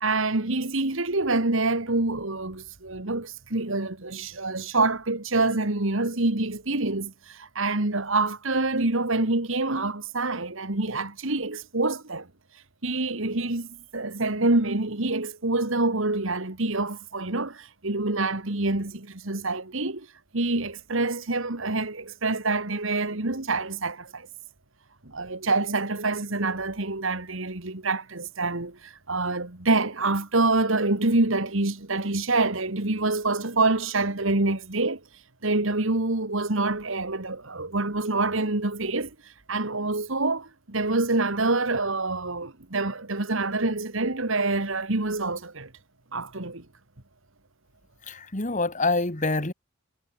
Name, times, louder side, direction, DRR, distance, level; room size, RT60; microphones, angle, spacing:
voice 1, 0.0-12.3 12.8-20.1 20.3-24.3 25.1-35.0 35.4-39.1 39.5-45.7 46.1-46.7, right 2 dB, 65° right, 2.1 m, -26 dB
voice 2, 48.0-49.5, left 3 dB, 35° left, 1.9 m, -26 dB
head